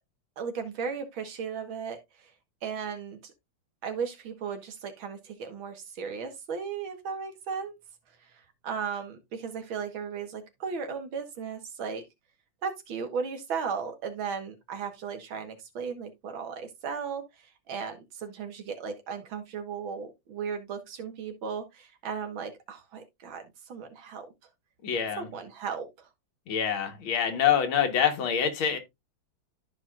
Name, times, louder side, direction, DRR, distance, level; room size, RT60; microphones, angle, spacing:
voice 1, 0.4-2.3 2.6-3.3 3.8-7.7 8.2-12.0 12.6-24.3 25.2-26.1, right 6 dB, 80° right, 2.2 m, -36 dB
voice 2, 24.8-25.3 26.5-28.8, left 8 dB, 85° left, 2.2 m, -26 dB
13.0 x 4.9 x 2.4 m
omnidirectional pair, 2.2 m